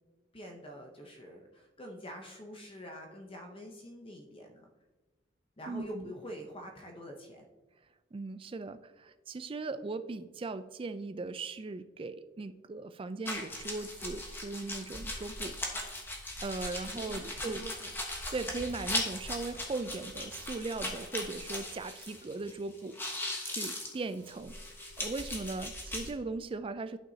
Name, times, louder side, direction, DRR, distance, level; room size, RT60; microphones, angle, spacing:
voice 1, 0.3-4.7 5.6-7.4 16.9-17.9, equal, 30° left, 3 dB, 0.7 m, -46 dB
voice 2, 5.7-6.1 8.1-15.6 16.4-17.7 18.3-23.0 23.4-24.5 25.0-27.0, right 3 dB, 30° right, 12 dB, 0.3 m, -38 dB
sound 1, 13.3-22.5 22.8-26.1, left 1 dB, 10° left, 1.1 m, -39 dB
10.5 x 6.0 x 2.8 m, 1.2 s
head